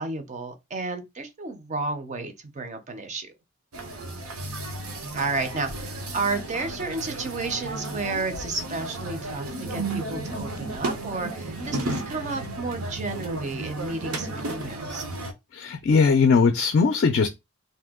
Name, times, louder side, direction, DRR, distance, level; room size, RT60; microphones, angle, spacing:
voice 1, 0.0-3.3 5.1-15.0, right 3 dB, 35° right, 0.5 m, -32 dB
sound 1, 3.7-15.3, right 2 dB, 80° right, 0.7 m, -33 dB
voice 2, 15.5-17.3, left 5 dB, 50° left, 0.3 m, -19 dB
2.7 x 2.2 x 3.5 m
head